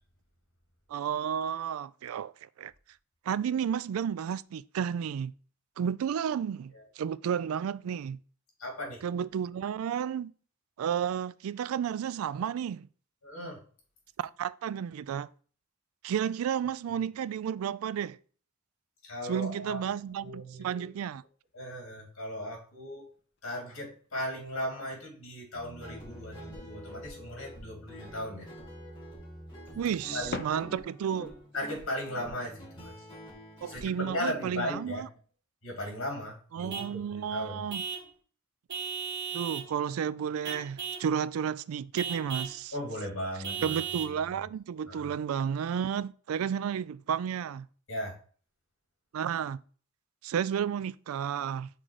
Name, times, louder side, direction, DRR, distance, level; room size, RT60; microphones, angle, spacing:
voice 1, 0.9-2.3 2.6-2.7 3.3-5.3 5.8-8.2 9.0-10.3 10.8-12.9 14.2-15.3 16.0-18.2 19.2-21.2 29.7-31.3 33.6-35.1 36.5-37.8 39.3-42.7 43.6-47.7 49.1-49.6 50.2-51.7, right 8 dB, 90° right, 0.3 m, -32 dB
voice 2, 8.6-9.0 13.2-13.6 19.0-19.8 20.2-20.9 21.5-23.1 23.4-28.5 30.1-30.4 31.2-31.3 31.5-32.9 33.6-35.0 35.6-37.6 42.7-43.8 44.9-45.1 47.9-48.1, left 1 dB, 75° left, 2.6 m, -37 dB
sound 1, 21.4-22.0 22.4-22.6 23.0-25.4 25.7-27.0 27.4-28.4 28.7-29.5 29.8-31.4 31.9-33.0, left 3 dB, 55° left, 0.7 m, -47 dB
Guitar, 25.5-33.8, equal, 25° left, 2.5 m, -47 dB
Vehicle horn car horn honking / Truck, 36.7-37.0 37.7-38.1 38.7-39.7 40.4-41.1 42.0-42.6 43.4-44.2, right 8 dB, 55° right, 1.3 m, -36 dB
5.9 x 3.8 x 4.7 m
head